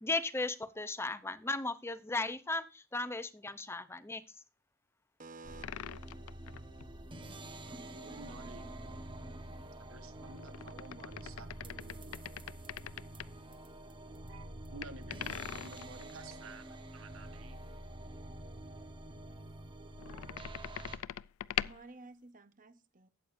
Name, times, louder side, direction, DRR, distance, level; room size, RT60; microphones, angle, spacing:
voice 1, 0.0-4.2, left 2 dB, 10° left, 0.7 m, -36 dB
voice 2, 5.2-5.6 21.5-23.1, right 3 dB, 40° right, 1.0 m, -52 dB
sound 1, 5.4-21.0, right 1 dB, 25° right, 1.2 m, -47 dB
sound 2, 5.6-6.9 10.2-13.3 14.8-16.4 19.9-21.9, left 11 dB, 90° left, 0.4 m, -42 dB
voice 3, 7.9-8.7 9.9-12.3 14.3-16.6 16.9-17.6, right 3 dB, 70° right, 1.2 m, -52 dB
13.5 x 8.5 x 2.6 m
head